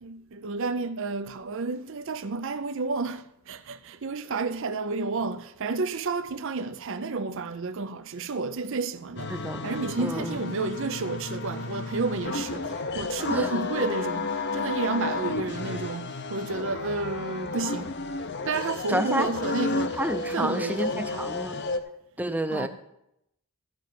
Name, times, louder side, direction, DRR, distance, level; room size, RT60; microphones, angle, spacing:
voice 1, 0.0-9.3 9.6-12.7 12.9-17.9 18.5-20.0 20.3-21.3 22.5-22.7, right 4 dB, 60° right, 0.6 m, -31 dB
sound 1, 9.2-21.8, left 3 dB, 50° left, 0.7 m, -32 dB
voice 2, 9.3-9.7 10.0-10.4 13.3-13.5 18.9-19.3 19.9-21.6 22.2-22.7, right 1 dB, 5° right, 0.6 m, -29 dB
13.5 x 5.4 x 7.6 m
head